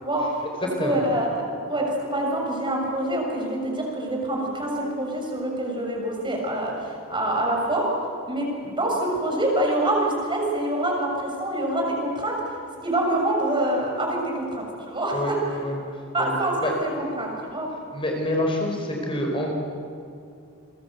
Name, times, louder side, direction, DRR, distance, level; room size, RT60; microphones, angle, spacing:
voice 1, 0.0-0.4 0.8-8.0 8.3-12.4 12.8-15.4 16.1-17.7, right 1 dB, 25° right, 0 dB, 6.5 m, -26 dB
voice 2, 15.1-15.8 16.2-16.3 16.6-16.7 17.9-19.5, left 1 dB, 25° left, 1 dB, 4.3 m, -27 dB
29.0 x 23.0 x 8.0 m, 2.6 s
head